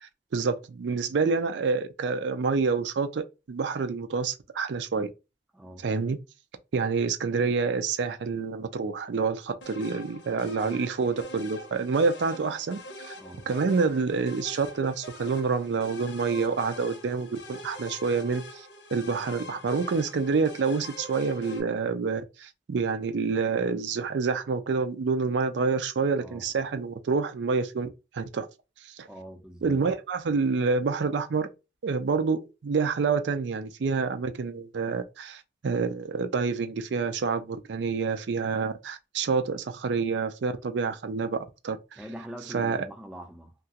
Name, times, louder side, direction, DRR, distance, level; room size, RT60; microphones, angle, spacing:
voice 1, 0.0-5.1 5.8-6.2 6.7-13.1 13.5-27.9 28.1-28.5 28.8-29.1 29.6-31.5 31.8-41.8 42.5-42.8, right 4 dB, 85° right, 0.4 m, -28 dB
voice 2, 5.5-5.9 13.1-13.5 26.2-26.6 29.1-29.8 42.0-43.5, equal, 5° right, 0.4 m, -43 dB
sound 1, 9.6-21.6, left 1 dB, 90° left, 0.8 m, -44 dB
2.9 x 2.3 x 2.8 m
head